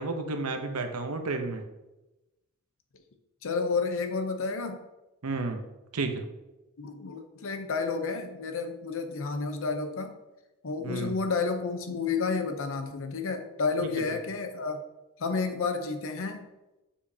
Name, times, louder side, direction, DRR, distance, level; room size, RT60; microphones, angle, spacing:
voice 1, 0.0-1.6 5.2-5.6 5.9-6.2 10.8-11.1 13.8-13.9, right 3 dB, 85° right, 6 dB, 0.8 m, -31 dB
voice 2, 3.4-4.8 6.8-10.1 10.6-14.8 15.2-16.5, left 4 dB, 65° left, 7 dB, 0.7 m, -31 dB
6.8 x 5.3 x 2.8 m, 1.0 s
head